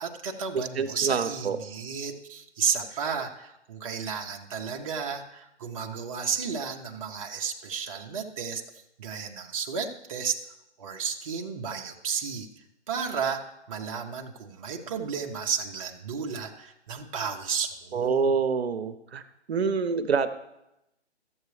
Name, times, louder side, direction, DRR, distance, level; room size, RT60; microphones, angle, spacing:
voice 1, 0.0-8.6 9.0-10.4 10.8-12.5 12.9-18.3, right 6 dB, 30° right, 2 dB, 0.7 m, -33 dB
voice 2, 0.5-1.6 17.9-19.2 19.5-20.3, right 5 dB, 65° right, 10 dB, 0.9 m, -26 dB
13.5 x 7.7 x 3.2 m, 0.87 s
hypercardioid pair, 155°, 34 cm